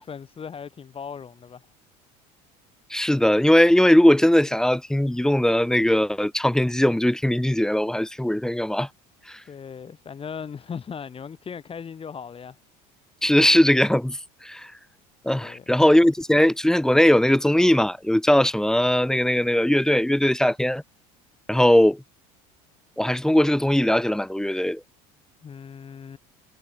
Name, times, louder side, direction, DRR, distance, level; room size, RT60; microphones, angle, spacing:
voice 1, 0.0-1.7 9.5-12.6 15.3-15.7 25.4-26.2, left 6 dB, 30° left, 7.6 m, -38 dB
voice 2, 2.9-8.9 9.3-9.4 13.2-14.7 15.2-20.8 21.5-22.0 23.0-24.8, left 1 dB, 5° left, 0.7 m, -19 dB
supercardioid pair, 100°, 18 cm